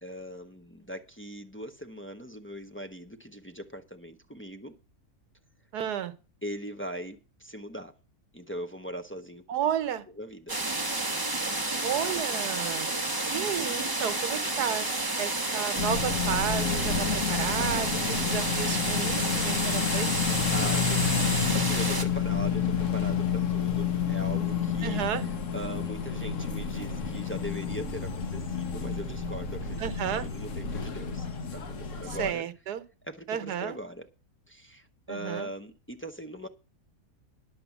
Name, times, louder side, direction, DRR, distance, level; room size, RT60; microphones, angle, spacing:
voice 1, 0.0-4.7 6.4-7.9 8.3-9.4 10.2-10.6 20.5-21.1 21.5-25.0 25.5-29.9 30.2-31.3 31.5-32.4 33.1-34.1 34.5-36.5, equal, 15° left, 0.5 m, -40 dB
voice 2, 5.7-6.1 9.5-10.1 11.8-12.9 13.2-20.1 24.8-25.3 29.8-30.3 32.1-32.8 33.3-33.8 35.1-35.5, right 9 dB, 80° right, 1.5 m, -32 dB
sound 1, 10.5-22.0, right 2 dB, 15° right, 1.3 m, -30 dB
sound 2, 15.8-32.3, left 6 dB, 55° left, 1.5 m, -30 dB
10.5 x 7.6 x 7.1 m
omnidirectional pair, 1.7 m